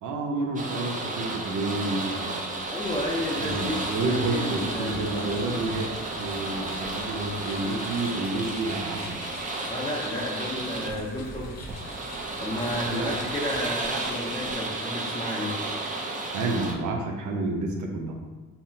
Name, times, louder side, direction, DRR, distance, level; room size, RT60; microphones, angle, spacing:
voice 1, 0.0-2.6 3.4-5.9 6.2-9.2 12.8-13.2 16.2-18.1, right 2 dB, 75° right, 1 dB, 0.7 m, -30 dB
sound 1, 0.6-16.7, right 2 dB, 25° right, 0.6 m, -33 dB
voice 2, 2.7-5.4 9.6-11.6 12.4-15.6, left 1 dB, 15° left, -6 dB, 0.6 m, -32 dB
sound 2, 2.8-14.5, left 2 dB, 55° left, 0.8 m, -45 dB
5.5 x 2.1 x 2.7 m, 1.2 s
cardioid pair, 90°, 30 cm